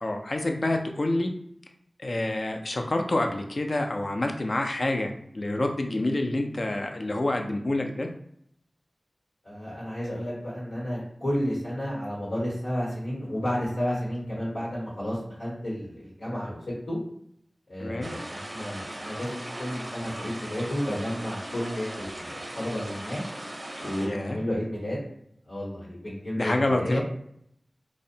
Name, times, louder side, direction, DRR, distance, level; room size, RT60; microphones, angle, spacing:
voice 1, 0.0-1.3 2.0-8.1 17.8-18.1 24.0-24.4 26.4-27.0, left 2 dB, 60° left, 4 dB, 0.3 m, -27 dB
voice 2, 9.4-17.0 17.7-23.2 23.8-25.0 25.5-27.0, equal, 85° left, -9 dB, 1.0 m, -32 dB
sound 1, 18.0-24.1, right 1 dB, 40° right, 0.5 m, -38 dB
2.6 x 2.0 x 2.6 m, 0.70 s
wide cardioid pair, 70°, 0 cm